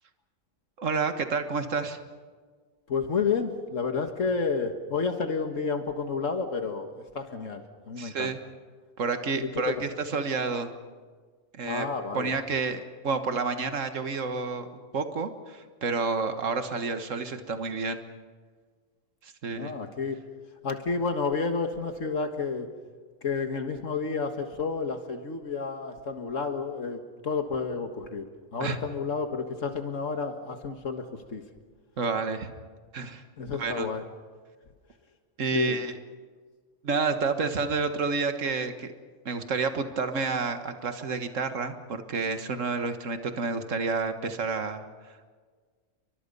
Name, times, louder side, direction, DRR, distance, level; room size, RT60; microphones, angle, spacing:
voice 1, 0.8-2.0 8.0-8.4 9.0-9.8 10.1-10.7 11.5-11.9 12.2-18.0 19.2-19.7 28.6-28.8 32.0-32.5 32.9-33.2 33.6-33.9 35.4-35.9 36.8-38.9 39.3-44.8, right 4 dB, 75° right, 8 dB, 1.9 m, -29 dB
voice 2, 2.9-8.3 9.4-9.9 11.6-12.4 19.5-20.2 20.6-22.7 23.2-28.3 28.5-31.4 33.4-34.0 35.5-35.8, left 5 dB, 80° left, 6 dB, 1.9 m, -30 dB
29.5 x 24.5 x 5.5 m, 1.5 s
omnidirectional pair, 1.3 m